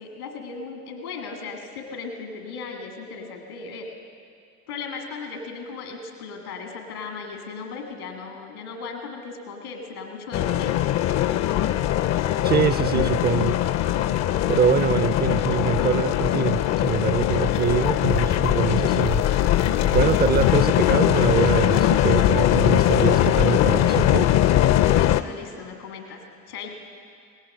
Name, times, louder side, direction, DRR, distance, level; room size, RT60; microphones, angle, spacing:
voice 1, 0.0-3.9 4.7-11.0 24.9-26.2 26.5-26.7, left 4 dB, 75° left, 3 dB, 1.8 m, -37 dB
sound 1, 10.3-25.2, left 12 dB, 40° left, 0.5 m, -21 dB
voice 2, 12.4-13.6 14.5-19.2 19.9-24.3, right 8 dB, 25° right, 13 dB, 0.4 m, -24 dB
18.0 x 10.5 x 5.2 m, 2.3 s
figure-of-eight pair, 50°, 45 cm